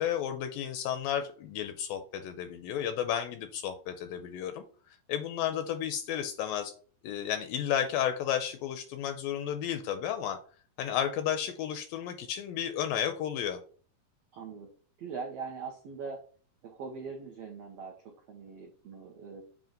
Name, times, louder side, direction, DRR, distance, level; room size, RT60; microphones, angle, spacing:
voice 1, 0.0-4.6 5.1-6.7 7.0-10.4 10.8-13.6, left 9 dB, 80° left, 8 dB, 2.1 m, -32 dB
voice 2, 14.3-14.7 15.0-16.2 16.6-19.4, right 5 dB, 85° right, 0 dB, 1.4 m, -41 dB
7.6 x 2.8 x 5.1 m, 0.42 s
omnidirectional pair, 4.4 m